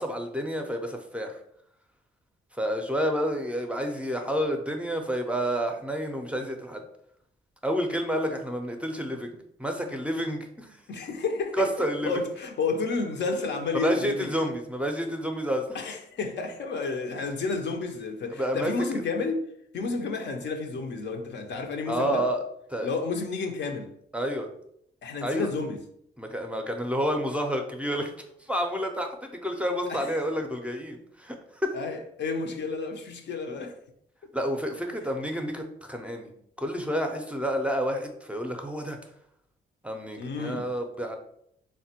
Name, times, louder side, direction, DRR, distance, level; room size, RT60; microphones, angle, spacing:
voice 1, 0.0-1.4 2.5-6.8 7.6-10.8 11.6-12.1 13.8-15.8 18.4-19.0 21.9-22.4 22.7-22.9 24.1-24.5 25.2-25.5 26.2-28.1 28.4-31.7 34.3-36.3 36.6-39.0 39.8-41.2, equal, 5° right, 0.4 m, -29 dB
voice 2, 10.9-11.7 12.0-14.3 15.7-19.4 19.7-22.3 22.8-23.9 25.0-25.8 29.9-30.1 31.7-33.7 40.2-40.7, left 4 dB, 65° left, 0.5 m, -31 dB
3.3 x 2.1 x 2.8 m
cardioid pair, 65°, 20 cm